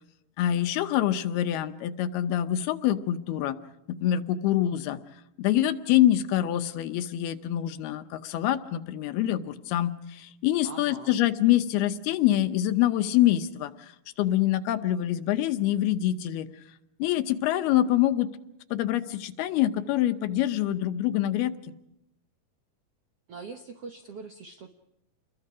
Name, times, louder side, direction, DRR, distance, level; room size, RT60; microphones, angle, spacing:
voice 1, 0.4-3.6 3.9-5.0 5.4-13.9 14.2-16.5 17.0-18.3 18.7-21.5, left 12 dB, 85° left, 9 dB, 2.9 m, -25 dB
voice 2, 10.6-11.1 23.3-24.7, right 4 dB, 70° right, 4 dB, 1.4 m, -42 dB
29.0 x 22.0 x 5.0 m, 0.80 s
omnidirectional pair, 4.4 m